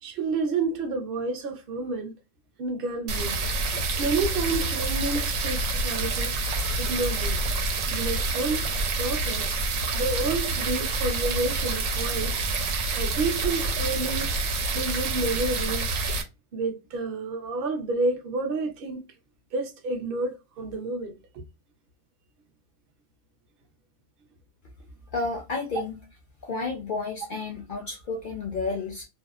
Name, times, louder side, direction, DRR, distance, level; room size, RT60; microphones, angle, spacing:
voice 1, 0.0-2.1 2.6-3.4 4.0-6.4 6.8-7.4 7.9-8.6 9.0-9.5 9.9-12.3 12.9-14.3 14.7-16.0 16.5-19.1 19.5-21.4, right 3 dB, 55° right, 0.7 m, -29 dB
sound 1, 3.1-16.2, right 3 dB, 90° right, 1.0 m, -27 dB
voice 2, 25.1-26.0 26.4-29.1, left 3 dB, 60° left, 0.5 m, -31 dB
2.7 x 2.0 x 2.3 m
omnidirectional pair, 1.3 m